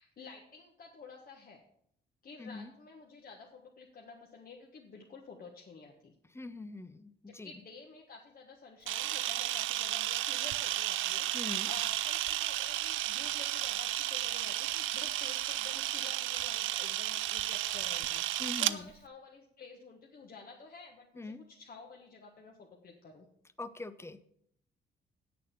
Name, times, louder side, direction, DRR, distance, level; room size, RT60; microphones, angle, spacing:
voice 1, 0.0-1.6 2.2-6.2 7.3-23.3, left 4 dB, 45° left, 0 dB, 1.4 m, -51 dB
voice 2, 6.3-7.5 11.3-11.7 18.4-18.9 21.2-21.5 23.6-24.2, left 2 dB, 15° left, 13 dB, 0.7 m, -43 dB
Camera, 8.9-18.8, right 14 dB, 80° right, 0.5 m, -33 dB
8.4 x 6.8 x 6.7 m, 0.70 s
cardioid pair, 90°, 20 cm